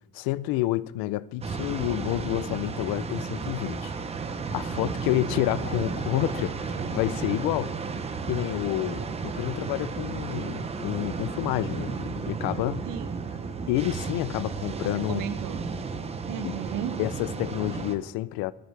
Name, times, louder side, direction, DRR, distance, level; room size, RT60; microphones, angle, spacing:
voice 1, 0.1-3.9 4.5-7.7 8.2-12.9 13.7-15.2 16.4-16.5 17.0-18.5, left 16 dB, 80° left, 0.6 m, -29 dB
sound 1, 1.4-18.0, right 5 dB, 20° right, 0.7 m, -33 dB
voice 2, 12.8-13.3 14.6-15.7 16.3-17.0, right 9 dB, 70° right, 1.3 m, -35 dB
22.0 x 9.7 x 3.3 m
cardioid pair, 175°, 35 cm